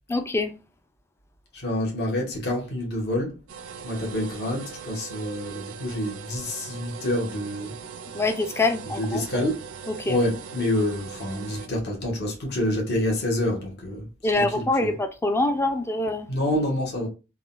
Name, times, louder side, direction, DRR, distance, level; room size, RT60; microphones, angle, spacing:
voice 1, 0.1-0.5 8.1-9.3 9.9-10.2 14.2-16.3, left 2 dB, 10° left, 0.3 m, -25 dB
voice 2, 1.5-3.3 3.8-7.7 9.0-9.6 10.1-14.1 14.4-14.9 16.3-17.1, left 1 dB, 50° left, 1.0 m, -27 dB
sound 1, 3.5-11.7, right 6 dB, 65° right, 0.4 m, -40 dB
3.5 x 2.1 x 2.5 m
head